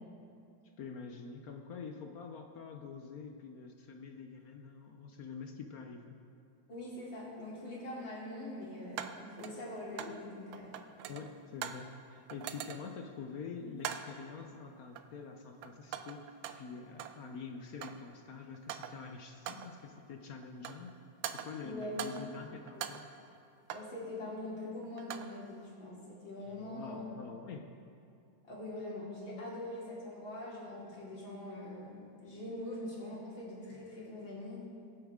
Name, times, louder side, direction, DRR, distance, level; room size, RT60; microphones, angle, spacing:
voice 1, 0.8-6.2 11.1-20.9 21.3-23.1 26.5-27.7, left 5 dB, 60° left, 4 dB, 1.0 m, -46 dB
voice 2, 6.7-10.7 21.6-22.0 22.7-22.8 23.7-27.1 28.4-34.6, left 1 dB, 85° left, -6 dB, 3.7 m, -43 dB
sound 1, 6.7-6.8 9.0-10.2 10.5-11.9 12.3-13.0 13.8-14.2 14.9-15.3 15.6-17.2 17.5-18.1 18.5-19.1 19.5-19.8 20.4-20.9 21.2-22.4 22.7-24.0 24.8-25.4, right 9 dB, 90° right, 1.4 m, -43 dB
22.5 x 8.0 x 3.6 m, 2.5 s
omnidirectional pair, 2.1 m